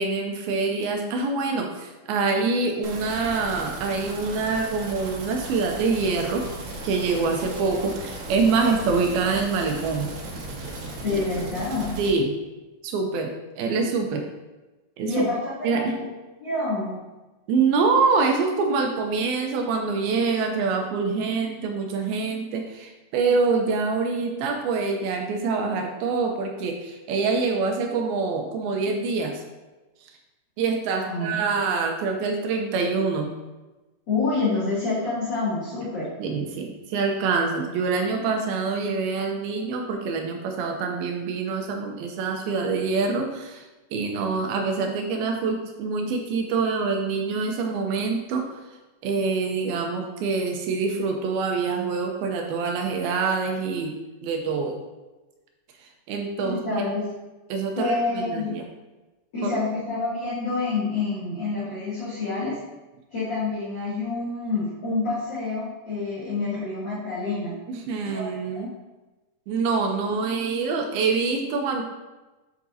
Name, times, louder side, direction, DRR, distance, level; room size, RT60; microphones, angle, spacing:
voice 1, 0.0-6.5 6.8-10.1 12.0-12.3 12.8-14.3 15.0-15.1 15.6-16.0 17.5-29.4 30.6-33.3 36.2-43.7 43.9-48.5 49.0-53.9 54.2-54.8 55.8-56.8 57.5-58.7 59.4-59.5 67.7-68.7 69.5-71.8, right 4 dB, 75° right, 3 dB, 2.5 m, -25 dB
sound 1, 2.8-12.1, right 2 dB, 55° right, 2.3 m, -36 dB
voice 2, 11.0-12.0 15.0-16.0 16.4-17.0 31.0-31.4 34.1-36.1 56.4-57.1 57.8-58.6 59.3-62.6 63.1-67.5 68.1-68.6, left 3 dB, 30° left, -12 dB, 2.6 m, -27 dB
8.1 x 7.4 x 2.7 m, 1.1 s
omnidirectional pair, 4.6 m